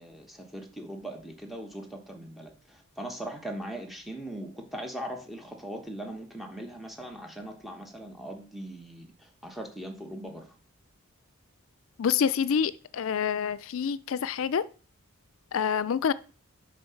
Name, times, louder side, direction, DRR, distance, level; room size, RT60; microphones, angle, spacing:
voice 1, 0.0-10.5, right 1 dB, ahead, 1.1 m, -40 dB
voice 2, 12.0-14.6 15.5-16.1, left 7 dB, 65° left, 0.4 m, -27 dB
7.8 x 3.8 x 5.7 m
head